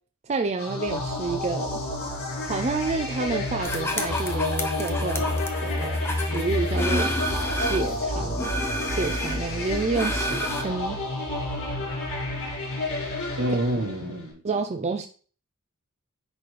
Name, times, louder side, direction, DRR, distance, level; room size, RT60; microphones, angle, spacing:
voice 1, 0.2-1.8 2.4-7.1 7.5-8.5 8.9-11.0 14.4-15.1, right 4 dB, 30° right, 0.4 m, -29 dB
sound 1, 0.6-14.2, left 2 dB, 85° left, 3.8 m, -29 dB
sound 2, 3.6-8.0 8.4-10.6, equal, 10° left, 0.7 m, -31 dB
voice 2, 13.4-14.4, right 1 dB, 70° right, 1.3 m, -27 dB
9.8 x 3.9 x 3.3 m
head